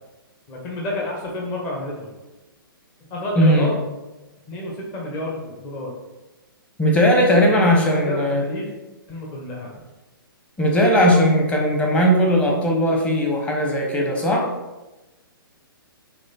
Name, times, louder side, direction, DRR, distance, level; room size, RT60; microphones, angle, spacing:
voice 1, 0.5-2.1 3.1-3.7 4.5-5.9 7.3-8.7 9.1-9.7, left 1 dB, 25° left, -2 dB, 1.4 m, -29 dB
voice 2, 3.4-3.7 6.8-8.4 10.6-14.5, equal, 10° left, 0 dB, 1.3 m, -18 dB
9.5 x 3.3 x 4.5 m, 1.1 s
figure-of-eight pair, 120°, 12 cm